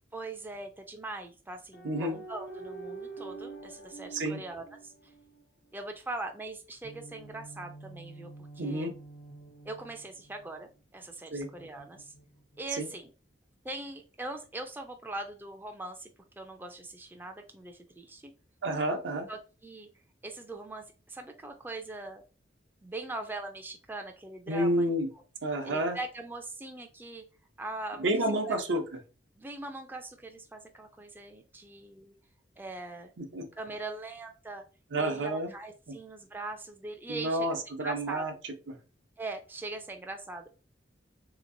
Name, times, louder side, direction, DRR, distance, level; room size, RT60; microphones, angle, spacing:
voice 1, 0.1-5.1 5.7-8.9 9.6-12.1 12.6-13.1 13.6-16.1 16.4-18.3 19.3-19.9 20.2-22.2 22.8-24.9 25.1-25.2 25.6-27.3 27.6-28.1 28.5-28.8 29.4-32.1 32.6-33.1 33.6-34.6 34.9-37.5 37.8-38.2 39.2-40.5, right 2 dB, 10° right, 4 dB, 0.3 m, -41 dB
sound 1, 1.7-5.4 6.8-10.6 11.4-12.6, right 3 dB, 70° left, 0.9 m, -46 dB
voice 2, 1.8-2.2 4.1-4.4 8.6-8.9 11.3-11.5 12.8-12.9 18.6-19.3 24.5-25.1 25.4-26.0 28.0-28.8 33.2-33.5 34.9-35.5 35.9-36.0 37.1-38.8, right 1 dB, 75° right, 4 dB, 0.7 m, -30 dB
3.4 x 2.9 x 2.5 m, 0.34 s
head